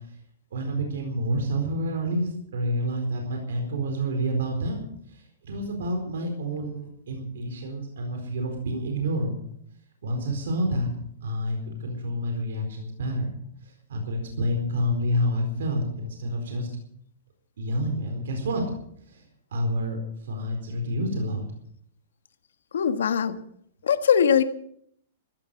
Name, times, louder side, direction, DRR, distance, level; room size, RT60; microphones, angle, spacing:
voice 1, 0.5-4.9 5.1-9.3 10.0-10.9 11.2-13.3 13.9-16.7 17.6-18.6 19.1-19.2 19.5-20.0 20.3-21.4, equal, 80° right, 3 dB, 4.4 m, -28 dB
voice 2, 22.7-23.4 23.8-24.4, left 7 dB, 85° left, 10 dB, 1.5 m, -21 dB
15.0 x 13.0 x 6.7 m, 0.66 s
hypercardioid pair, 150°, 0 cm